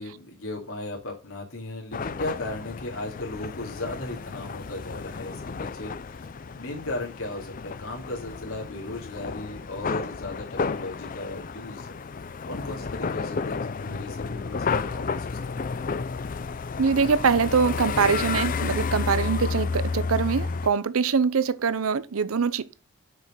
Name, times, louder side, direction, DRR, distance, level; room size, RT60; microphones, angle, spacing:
voice 1, 0.0-11.9 12.5-15.4, left 2 dB, 80° left, 2.5 m, -36 dB
sound 1, 1.9-20.7, left 4 dB, 40° left, 0.4 m, -31 dB
voice 2, 16.8-22.6, right 5 dB, 80° right, 0.6 m, -23 dB
6.3 x 5.4 x 6.4 m
head